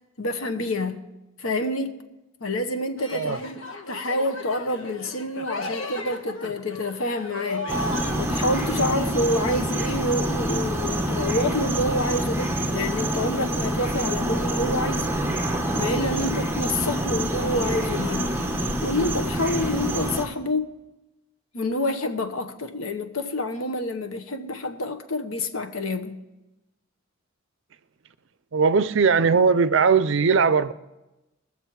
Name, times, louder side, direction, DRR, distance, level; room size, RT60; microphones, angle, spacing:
voice 1, 0.2-1.0 1.4-2.0 2.4-3.6 3.9-7.7 8.1-15.2 15.7-18.3 18.8-20.8 21.5-26.2, left 1 dB, 80° left, 1.1 m, -27 dB
sound 1, 3.0-8.2, left 2 dB, 65° left, 1.4 m, -34 dB
sound 2, 7.7-20.3, right 1 dB, 10° right, 1.0 m, -26 dB
voice 2, 28.5-30.7, right 5 dB, 65° right, 0.5 m, -19 dB
21.0 x 7.2 x 4.7 m
head